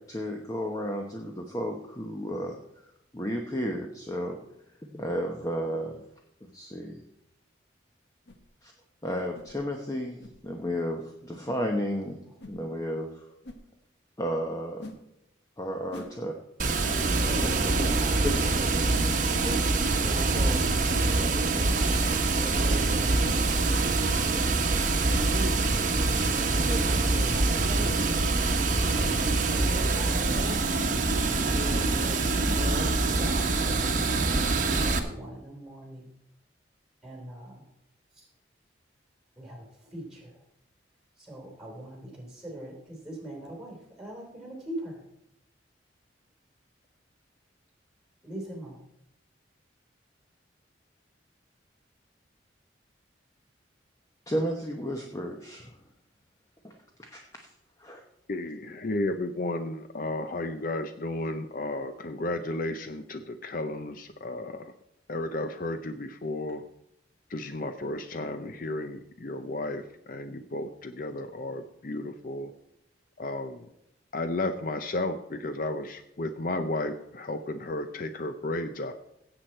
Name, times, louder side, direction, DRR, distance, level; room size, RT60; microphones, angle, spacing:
voice 1, 0.0-2.5 3.1-4.4 4.8-6.0 6.4-7.0 8.6-8.7 9.0-12.2 12.5-13.3 14.2-14.9 15.6-16.3 16.8-17.1 17.4-17.5 17.8-17.9 18.2-18.4 54.3-55.7 56.6-56.7 57.0-57.5 57.8-58.0, equal, 20° left, 2 dB, 0.9 m, -33 dB
sound 1, 8.3-8.4 9.3-9.5 10.2-10.4 11.3-11.4 12.4-12.6 13.4-13.6 14.8-15.0 15.9-16.1 16.8-17.0 17.9-18.1 18.9-19.0 19.8-20.0 20.9-21.1 22.0-22.2 23.2-23.5, left 1 dB, 60° left, 1.2 m, -42 dB
Water, 16.6-35.0, right 3 dB, 40° right, 1.1 m, -25 dB
voice 2, 17.0-18.8 19.3-23.6 24.8-26.0 26.3-28.2 29.0-30.6 31.4-32.2 32.5-36.1 37.0-37.6 38.1-38.3 39.4-40.4 41.2-45.0 48.2-48.8, right 1 dB, 5° right, -1 dB, 3.7 m, -40 dB
voice 3, 58.3-64.7 65.1-66.6 67.3-69.8 70.1-72.5 73.2-73.7 74.1-78.9, left 2 dB, 45° left, 9 dB, 0.6 m, -33 dB
16.5 x 8.0 x 4.4 m, 0.82 s
head